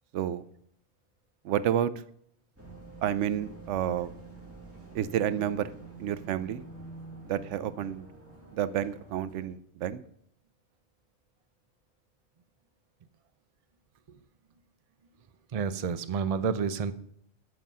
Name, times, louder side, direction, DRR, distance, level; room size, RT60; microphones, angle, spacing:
voice 1, 1.4-1.9 3.0-4.1 4.9-5.7 6.0-6.6 7.3-8.1 8.5-10.0, right 10 dB, 90° right, 15 dB, 0.9 m, -30 dB
sound 1, 2.6-9.5, right 3 dB, 10° right, 1.8 m, -48 dB
voice 2, 15.5-16.9, right 6 dB, 45° right, 11 dB, 0.5 m, -29 dB
7.8 x 5.4 x 7.4 m, 0.66 s
omnidirectional pair, 1.2 m